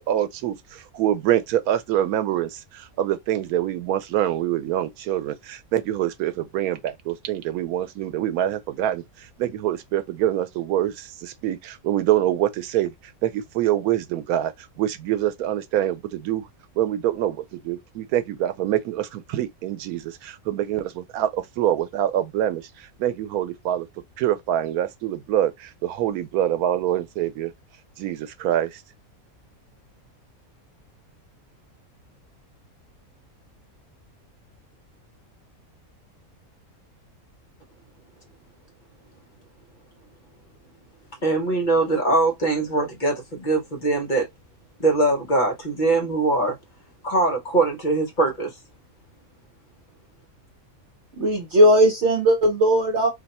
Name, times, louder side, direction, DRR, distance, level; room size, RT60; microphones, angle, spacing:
voice 1, 0.0-12.9 13.2-16.5 16.8-23.9 24.2-27.5 28.0-28.8, right 12 dB, 90° right, 1.1 m, -25 dB
voice 2, 41.2-44.3 44.8-46.5 47.0-48.5, right 2 dB, 40° left, 0.9 m, -22 dB
voice 3, 51.2-53.1, equal, 55° right, 1.1 m, -18 dB
2.7 x 2.2 x 4.0 m
omnidirectional pair, 1.5 m